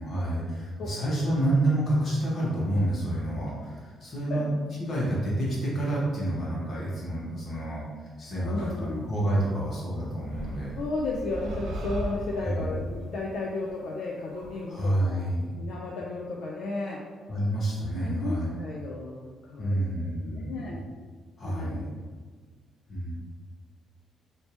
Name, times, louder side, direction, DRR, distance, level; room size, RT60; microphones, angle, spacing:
voice 1, 0.0-4.5 4.8-7.8 8.2-10.7 12.4-12.7 14.7-15.4 17.3-18.6 19.6-20.5 21.4-21.8 22.9-23.1, right 1 dB, 50° left, -6 dB, 1.4 m, -28 dB
voice 2, 0.8-1.4 4.3-4.4 8.4-9.1 10.8-15.2 15.6-17.0 17.8-19.8 20.2-20.8 21.4-21.8, left 3 dB, 75° left, -2 dB, 0.4 m, -34 dB
sound 1, 8.6-8.8 10.3-15.1, right 1 dB, 80° right, 0.5 m, -39 dB
3.3 x 2.8 x 2.9 m, 1.5 s
cardioid pair, 90°, 0 cm